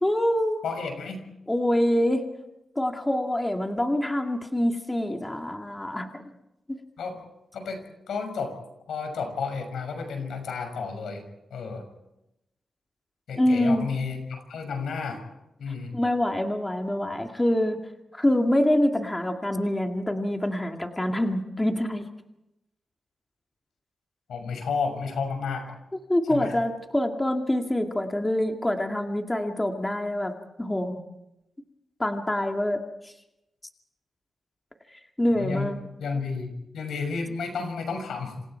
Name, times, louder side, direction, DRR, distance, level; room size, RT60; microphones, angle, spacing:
voice 1, 0.0-0.6 1.5-2.2 2.8-6.2 6.7-6.8 13.4-13.9 15.9-17.8 18.1-22.1 26.1-31.0 32.0-33.1 35.2-35.8, left 1 dB, 15° left, 3 dB, 2.2 m, -25 dB
voice 2, 0.6-1.2 7.0-7.2 7.5-8.6 8.9-11.2 11.5-11.8 13.3-15.2 15.6-15.9 24.3-25.8 26.3-26.5 35.3-35.7 36.0-38.4, left 5 dB, 85° left, 6 dB, 6.3 m, -32 dB
28.0 x 27.5 x 4.6 m, 0.88 s
cardioid pair, 100°, 0 cm